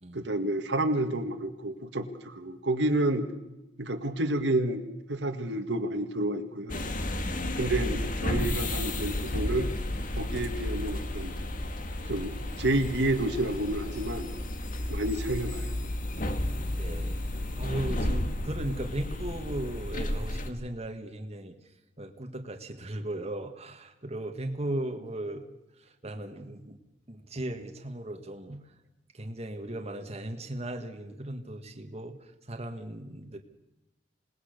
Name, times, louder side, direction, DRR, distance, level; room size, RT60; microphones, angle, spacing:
voice 1, 0.1-3.2 3.8-6.8 7.6-9.7 10.2-11.3 12.1-14.3 14.9-15.7, right 1 dB, 75° right, 6 dB, 1.9 m, -30 dB
sound 1, 6.7-20.5, left 1 dB, 50° left, 1.8 m, -32 dB
voice 2, 7.2-7.7 16.7-17.2 17.6-21.6 22.0-25.4 26.0-26.8 27.1-28.6 29.1-32.2 32.5-33.4, right 1 dB, 35° right, 4 dB, 1.7 m, -37 dB
sound 2, 7.4-14.1, equal, 25° left, 4.4 m, -50 dB
27.0 x 19.0 x 6.7 m, 0.99 s
head